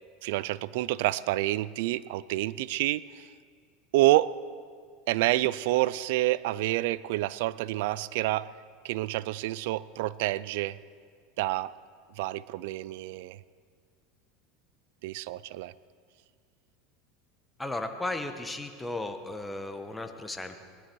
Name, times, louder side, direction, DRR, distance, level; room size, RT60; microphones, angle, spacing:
voice 1, 0.2-3.3 3.9-4.3 5.1-8.5 8.8-10.8 11.4-11.7 12.2-13.4 15.0-15.7, right 17 dB, 75° right, 19 dB, 0.4 m, -28 dB
voice 2, 17.6-20.6, left 2 dB, 10° left, 6 dB, 1.2 m, -35 dB
19.0 x 12.5 x 4.6 m, 2.1 s
supercardioid pair, 110°, 0 cm